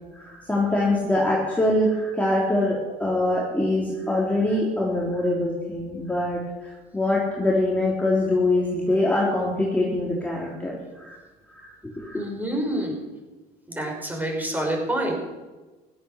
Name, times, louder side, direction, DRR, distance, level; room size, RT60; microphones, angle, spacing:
voice 1, 0.1-11.2 11.5-12.2, left 1 dB, 10° left, -4 dB, 3.8 m, -24 dB
voice 2, 12.1-13.0 13.7-15.1, right 1 dB, 10° right, 0 dB, 5.7 m, -27 dB
16.0 x 13.0 x 6.7 m, 1.2 s
cardioid pair, 110°, 17 cm